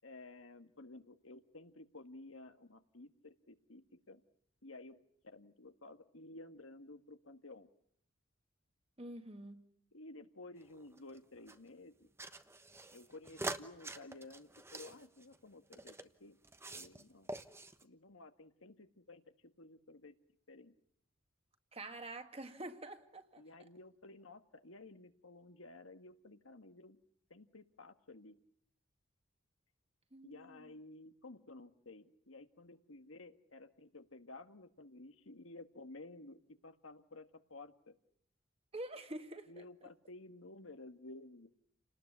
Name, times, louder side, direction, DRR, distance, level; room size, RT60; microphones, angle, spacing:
voice 1, 0.0-4.2 4.6-7.7 9.9-12.1 12.9-15.9 16.2-16.4 16.7-17.3 17.8-19.2 19.6-20.1 20.5-20.7 23.4-27.0 27.3-28.4 30.2-37.9 39.5-41.5, left 2 dB, 85° left, 1.8 m, -54 dB
voice 2, 9.0-9.7 21.7-23.4 30.1-30.7 38.7-39.6, right 1 dB, 30° right, 2.0 m, -47 dB
sound 1, 10.6-11.6 12.2-16.1 16.4-17.0 17.3-17.8, right 2 dB, 15° right, 1.1 m, -46 dB
30.0 x 19.0 x 9.7 m
head